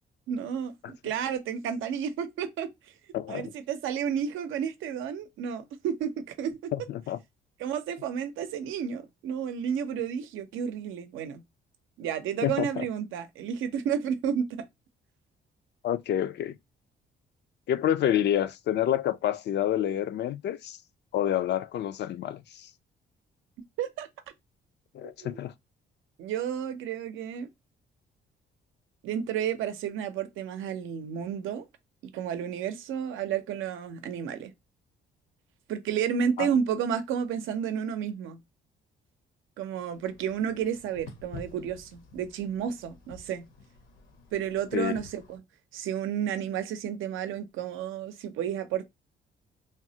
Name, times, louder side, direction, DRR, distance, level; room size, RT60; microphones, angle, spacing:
voice 1, 0.3-2.7 3.3-6.7 7.6-11.4 12.0-14.7 23.8-24.1 25.2-25.4 26.2-27.5 29.0-31.6 32.1-34.5 35.7-38.4 39.6-43.5 44.3-45.4 45.7-48.8, right 8 dB, 85° right, 0.6 m, -31 dB
voice 2, 3.1-3.5 6.7-7.2 12.4-12.8 15.8-16.6 17.7-20.8 21.1-22.7 24.9-25.5 36.4-36.5 44.7-45.0, left 11 dB, 60° left, 0.4 m, -28 dB
sound 1, 39.9-45.4, left 4 dB, 80° left, 1.0 m, -50 dB
3.4 x 2.0 x 2.6 m
cardioid pair, 90°, 20 cm